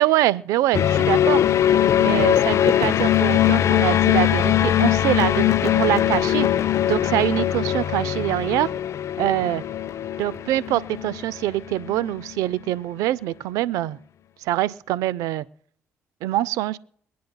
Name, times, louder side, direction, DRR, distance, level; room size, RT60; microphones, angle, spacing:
voice 1, 0.0-1.5 2.0-6.5 6.9-8.7 9.2-9.6 10.2-14.0 14.5-15.4 16.2-16.8, right 14 dB, 85° right, 20 dB, 0.4 m, -24 dB
sound 1, 0.7-12.1, left 11 dB, 60° left, 0.5 m, -21 dB
23.0 x 9.3 x 2.2 m, 0.62 s
supercardioid pair, 65°, 6 cm